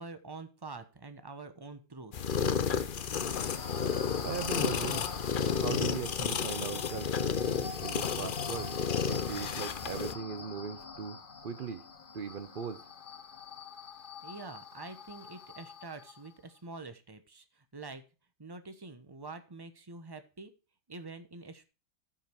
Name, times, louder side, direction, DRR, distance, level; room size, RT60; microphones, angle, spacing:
voice 1, 0.0-2.1 14.2-18.0 18.4-20.5 20.9-21.6, right 3 dB, 20° right, 0.8 m, -46 dB
sound 1, 2.1-10.1, left 7 dB, 90° left, 0.4 m, -32 dB
sound 2, 2.9-16.3, left 4 dB, 35° left, 1.0 m, -43 dB
voice 2, 4.2-5.0 5.6-7.1 7.8-8.7 9.1-11.8 12.1-12.8, right 6 dB, 80° right, 0.4 m, -39 dB
14.0 x 5.4 x 4.6 m
omnidirectional pair, 1.9 m